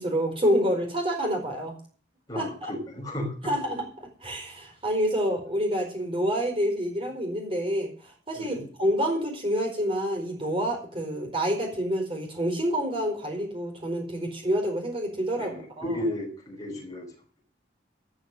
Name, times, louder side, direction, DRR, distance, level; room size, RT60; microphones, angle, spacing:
voice 1, 0.0-1.8 2.3-2.7 3.4-3.9 4.2-7.9 8.3-16.0, equal, 30° right, 1 dB, 4.8 m, -28 dB
voice 2, 2.3-3.5 8.4-8.6 15.4-17.1, left 1 dB, 20° left, -2 dB, 5.5 m, -33 dB
13.0 x 6.5 x 7.8 m, 0.43 s
head